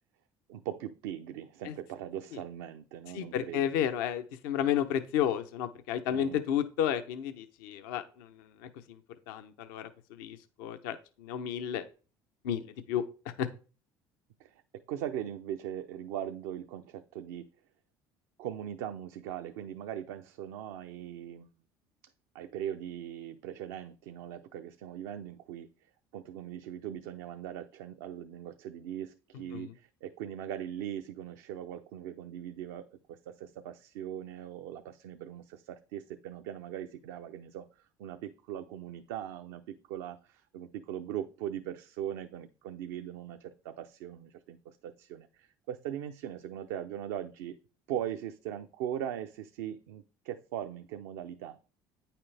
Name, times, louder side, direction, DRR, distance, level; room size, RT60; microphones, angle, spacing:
voice 1, 0.5-3.7 6.1-6.4 14.4-14.5 14.9-17.5 18.4-21.5 22.3-25.7 26.1-37.7 38.0-47.6 47.9-51.6, right 10 dB, 85° right, 0.6 m, -40 dB
voice 2, 3.1-9.0 9.3-11.8 12.4-12.6 12.9-13.0 13.4-13.5 29.5-29.7, left 10 dB, 85° left, 0.7 m, -32 dB
8.9 x 5.8 x 3.3 m
supercardioid pair, 80°, 11 cm